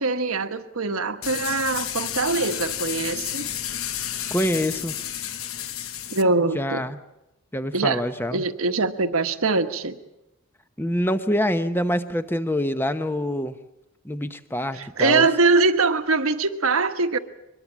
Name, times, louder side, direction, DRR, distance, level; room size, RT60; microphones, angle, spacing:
voice 1, 0.0-3.5 6.1-6.8 7.7-8.0 8.3-10.0 14.8-17.2, right 3 dB, 80° right, 8 dB, 1.4 m, -22 dB
sound 1, 1.2-6.2, left 10 dB, 75° left, 1.1 m, -31 dB
voice 2, 4.3-4.9 6.5-7.0 7.5-8.4 10.8-13.6 14.0-15.3, equal, 10° left, 10 dB, 1.0 m, -25 dB
23.5 x 21.5 x 7.4 m, 0.92 s
head